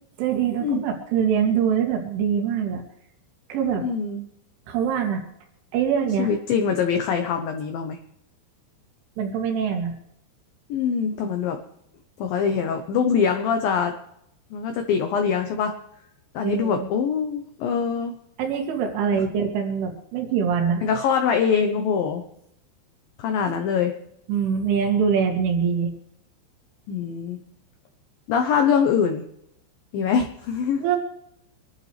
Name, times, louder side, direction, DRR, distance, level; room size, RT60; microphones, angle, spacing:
voice 1, 0.2-2.8 3.5-3.8 4.7-5.2 5.7-6.3 9.2-9.9 16.4-16.9 18.4-20.9 23.5-23.6 24.3-25.9 30.8-31.0, right 7 dB, 80° right, 1 dB, 4.8 m, -24 dB
voice 2, 3.8-4.3 6.2-8.0 10.7-11.6 12.2-13.9 14.5-15.7 16.3-18.1 20.8-22.2 23.2-23.9 26.9-27.4 28.3-29.2 29.9-30.8, left 6 dB, 80° left, 5 dB, 2.0 m, -23 dB
26.5 x 12.0 x 3.3 m, 0.76 s
omnidirectional pair, 5.6 m